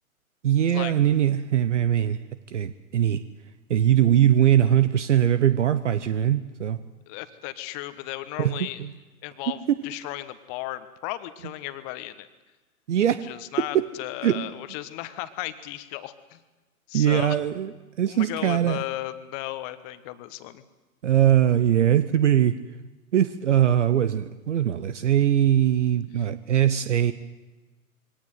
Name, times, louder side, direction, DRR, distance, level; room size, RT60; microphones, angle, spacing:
voice 1, 0.4-2.2 2.5-3.2 3.7-6.8 8.4-8.9 9.5-9.8 12.9-13.2 13.7-13.9 14.2-14.4 16.9-17.7 18.0-18.8 21.0-22.6 23.1-27.1, right 10 dB, 55° right, 14 dB, 1.0 m, -21 dB
voice 2, 7.1-8.8 9.2-12.3 13.2-16.4 16.9-17.4 18.1-20.6 26.2-26.3, left 15 dB, 25° left, 13 dB, 1.3 m, -35 dB
22.5 x 18.0 x 9.3 m, 1.2 s
figure-of-eight pair, 120°, 43 cm